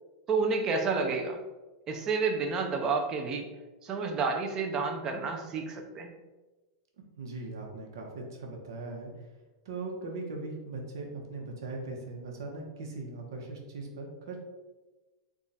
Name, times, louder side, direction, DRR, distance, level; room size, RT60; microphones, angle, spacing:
voice 1, 0.3-1.4 1.9-3.5 3.8-6.1, right 4 dB, 25° right, 4 dB, 0.5 m, -30 dB
voice 2, 7.2-9.3 9.6-14.4, right 3 dB, 85° right, 1 dB, 1.0 m, -39 dB
3.6 x 2.4 x 4.0 m, 1.2 s
supercardioid pair, 145°, 2 cm